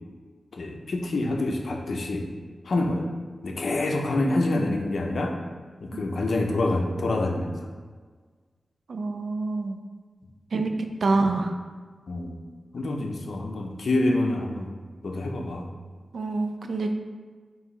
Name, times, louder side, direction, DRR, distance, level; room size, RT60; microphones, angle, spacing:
voice 1, 0.5-2.3 2.6-3.0 3.4-5.4 5.8-7.5 12.1-12.3 12.7-14.7 15.0-15.7, left 2 dB, 65° left, 2 dB, 0.6 m, -26 dB
voice 2, 8.9-9.8 10.5-10.7 11.0-11.5 16.1-16.9, right 3 dB, 70° right, 5 dB, 0.4 m, -26 dB
4.6 x 3.1 x 3.2 m, 1.5 s
wide cardioid pair, 95°, 0 cm